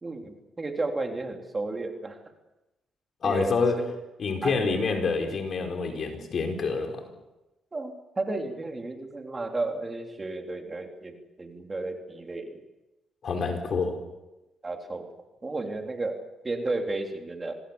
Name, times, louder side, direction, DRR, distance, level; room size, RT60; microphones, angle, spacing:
voice 1, 0.0-2.2 3.2-3.5 4.4-4.6 7.7-12.6 14.6-15.1 15.4-17.5, right 2 dB, 25° right, 3 dB, 3.6 m, -33 dB
voice 2, 3.2-3.8 4.2-7.0 13.2-14.0, left 4 dB, 55° left, 4 dB, 4.7 m, -27 dB
26.5 x 20.0 x 7.2 m, 1.0 s
cardioid pair, 90°, 0 cm